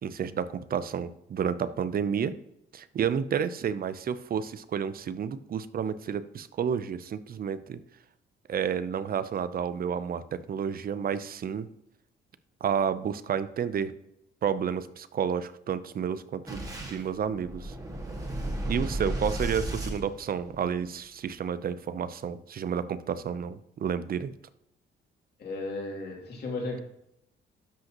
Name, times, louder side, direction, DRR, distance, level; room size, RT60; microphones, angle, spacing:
voice 1, 0.0-2.3 2.7-7.8 8.5-11.7 12.6-13.9 14.4-17.7 18.7-24.3, right 7 dB, 50° right, 14 dB, 0.6 m, -30 dB
Boom, 16.5-20.9, right 1 dB, 20° right, 1.9 m, -34 dB
voice 2, 25.4-26.8, left 2 dB, 55° left, -1 dB, 2.7 m, -35 dB
12.0 x 5.2 x 2.9 m, 0.80 s
cardioid pair, 90°, 20 cm